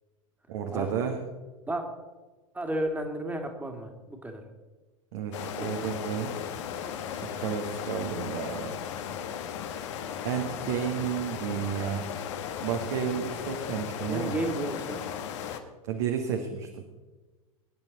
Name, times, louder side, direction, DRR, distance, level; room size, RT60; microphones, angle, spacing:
voice 1, 0.5-1.2 5.1-6.4 7.1-8.8 10.2-12.1 12.6-14.4 15.9-16.7, right 8 dB, 55° right, 3 dB, 1.7 m, -32 dB
voice 2, 2.5-4.4 5.6-5.7 14.1-15.0, right 1 dB, 10° right, 4 dB, 2.3 m, -32 dB
sound 1, 5.3-15.6, left 8 dB, 55° left, 1.5 m, -36 dB
21.0 x 10.5 x 4.1 m, 1.2 s
figure-of-eight pair, 85°, 18 cm